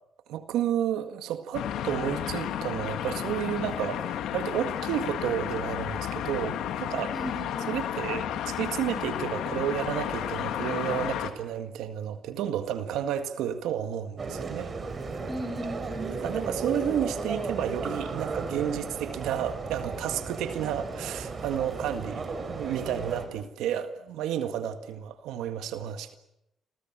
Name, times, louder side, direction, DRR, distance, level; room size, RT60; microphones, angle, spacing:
voice 1, 0.3-7.2 7.7-14.7 16.1-26.2, right 10 dB, 90° right, 1.8 m, -31 dB
sound 1, 1.5-11.3, left 10 dB, 85° left, 2.3 m, -32 dB
voice 2, 7.1-7.7 15.3-16.2, right 1 dB, 5° left, 4.6 m, -36 dB
sound 2, 14.2-23.3, right 4 dB, 40° right, 5.4 m, -35 dB
29.0 x 23.5 x 7.4 m
cardioid pair, 90°, 0 cm